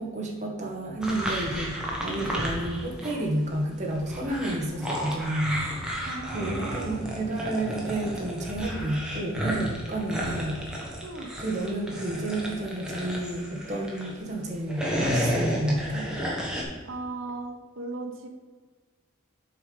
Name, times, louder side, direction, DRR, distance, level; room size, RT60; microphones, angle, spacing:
voice 1, 0.0-5.6 6.3-10.6 11.4-16.1, right 1 dB, 35° right, -1 dB, 1.5 m, -30 dB
sound 1, 1.0-3.2 3.5-14.1 14.6-16.6, equal, 5° right, 1.4 m, -32 dB
voice 2, 6.0-7.0 11.0-11.3 16.8-18.3, right 2 dB, 65° right, 5 dB, 1.0 m, -37 dB
7.6 x 5.4 x 5.1 m, 1.5 s
head